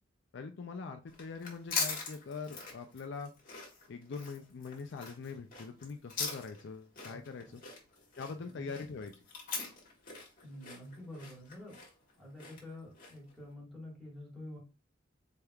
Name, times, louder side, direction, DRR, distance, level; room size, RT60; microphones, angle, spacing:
voice 1, 0.3-3.3 3.9-7.6 8.2-9.1, left 4 dB, 60° left, 5 dB, 0.4 m, -43 dB
sound 1, 1.1-13.3, left 4 dB, 45° left, 1.5 m, -42 dB
voice 2, 8.4-8.7 10.4-11.8 12.2-14.6, left 1 dB, ahead, -5 dB, 1.8 m, -48 dB
4.3 x 3.5 x 2.3 m, 0.32 s
head